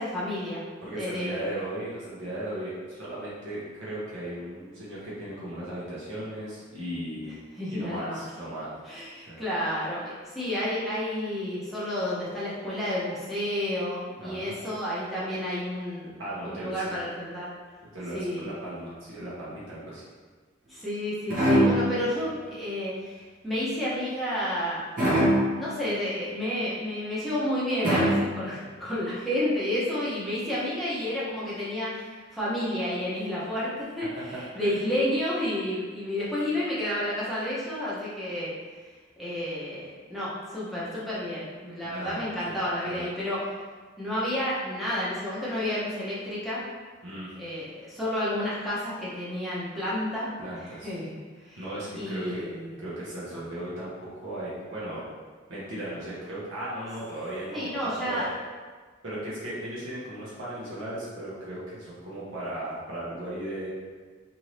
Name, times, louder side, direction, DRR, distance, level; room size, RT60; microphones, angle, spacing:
voice 1, 0.0-0.6 0.9-1.5 7.6-8.2 8.9-17.5 18.1-18.4 20.7-24.8 25.5-38.5 39.2-43.4 44.0-46.6 47.4-50.3 50.6-51.1 51.4-51.6 51.9-52.7 53.3-53.4 57.5-58.3, left 1 dB, ahead, -10 dB, 0.7 m, -31 dB
voice 2, 0.8-7.3 7.7-8.7 9.3-9.4 14.2-14.5 16.2-17.0 17.9-20.0 41.8-42.5 42.9-43.0 47.0-47.3 50.4-50.9 51.6-52.5 52.8-55.0 55.5-58.3 59.0-63.7, right 1 dB, 75° right, -9 dB, 0.9 m, -36 dB
sound 1, 21.3-22.2 25.0-25.7 27.8-28.6, equal, 40° right, 0.9 m, -23 dB
2.7 x 2.7 x 3.1 m, 1.4 s
head